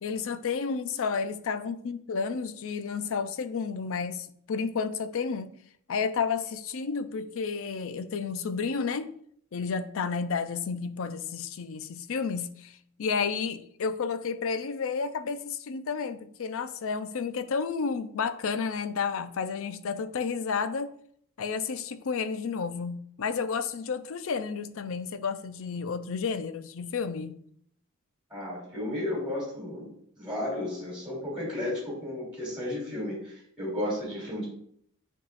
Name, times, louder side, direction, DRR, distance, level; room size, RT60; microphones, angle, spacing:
voice 1, 0.0-5.5 5.9-9.1 9.5-20.9 21.4-27.4, left 5 dB, 65° left, 0.5 m, -31 dB
voice 2, 28.3-29.9 30.2-34.5, left 1 dB, 5° right, 2.7 m, -33 dB
10.5 x 3.6 x 2.5 m
head